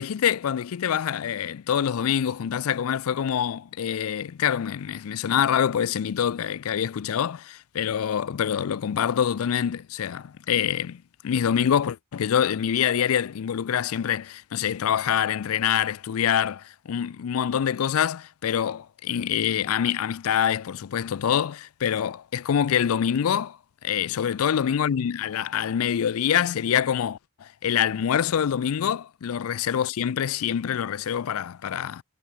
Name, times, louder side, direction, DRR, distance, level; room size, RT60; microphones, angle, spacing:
voice 1, 0.0-23.6 23.8-32.0, left 8 dB, 80° left, 0.4 m, -25 dB
head